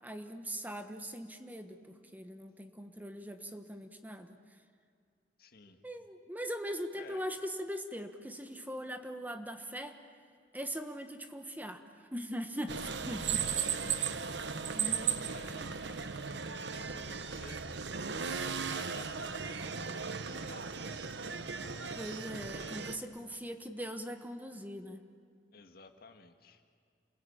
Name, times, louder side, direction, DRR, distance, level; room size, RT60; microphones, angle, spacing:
voice 1, 0.0-4.4 5.8-10.0 10.5-13.7 14.7-15.2 22.0-25.0, equal, 10° right, 6 dB, 1.3 m, -41 dB
voice 2, 5.4-5.8 6.9-7.2 13.3-14.1 14.7-15.0 15.3-17.7 18.7-21.2 22.5-23.1 25.5-26.6, left 3 dB, 60° left, 6 dB, 1.9 m, -54 dB
sound 1, 12.7-23.0, right 6 dB, 75° right, 1.1 m, -36 dB
29.0 x 21.5 x 8.8 m, 2.3 s
head